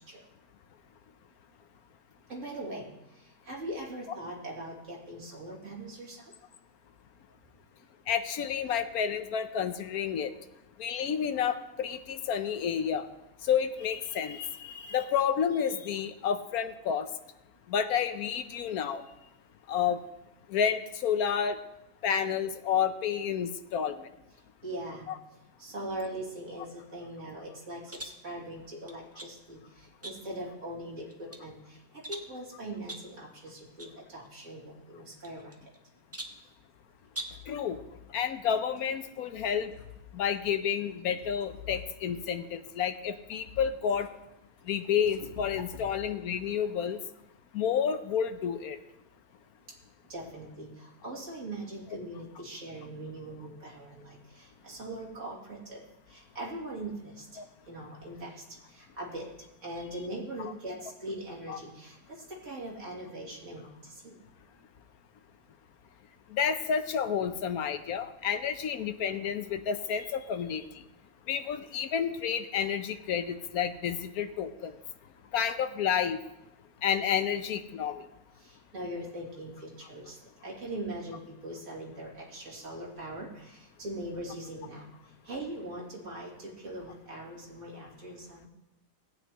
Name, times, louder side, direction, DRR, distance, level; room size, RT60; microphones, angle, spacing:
voice 1, 2.3-2.9 3.2-6.3 24.6-25.1 25.6-35.5 50.1-55.8 56.1-57.3 57.7-59.3 59.6-64.2 78.4-80.2 80.4-84.9 85.2-88.5, right 1 dB, 50° right, -5 dB, 2.9 m, -41 dB
voice 2, 8.1-10.3 10.8-13.0 13.4-17.1 17.7-19.0 19.7-20.0 20.5-21.6 22.0-24.1 25.1-25.2 37.5-37.8 38.1-39.7 40.1-44.1 44.7-47.0 47.5-48.8 57.4-57.5 61.5-61.6 66.3-70.8 71.3-74.8 75.3-76.2 76.8-78.1, left 8 dB, 70° left, 10 dB, 1.1 m, -30 dB
sound 1, 27.9-28.2 28.9-29.4 30.0-30.5 31.0-31.5 32.0-32.4 32.9-33.2 33.8-34.0 34.2-34.3 35.2-35.8 36.1-36.5 37.1-37.5, right 1 dB, 15° right, 0.5 m, -43 dB
sound 2, 36.9-38.8 39.2-40.4 41.2-42.3 42.9-44.1 44.3-46.5, left 9 dB, 85° left, 1.7 m, -48 dB
17.5 x 9.1 x 3.0 m, 0.93 s
omnidirectional pair, 1.7 m